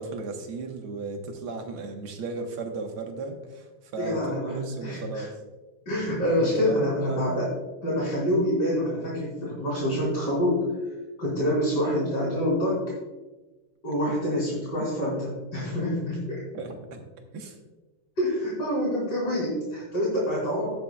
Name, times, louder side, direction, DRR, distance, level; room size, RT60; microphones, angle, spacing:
voice 1, 0.0-5.3 6.4-7.2 14.8-14.9 16.5-17.0 17.3-17.6, right 3 dB, 85° right, 3 dB, 2.1 m, -35 dB
voice 2, 4.0-5.3 5.9-7.5 7.8-10.6 11.2-12.8 13.8-16.4 18.2-20.7, equal, 55° left, -6 dB, 4.1 m, -26 dB
18.0 x 7.1 x 2.3 m, 1.2 s
omnidirectional pair, 2.3 m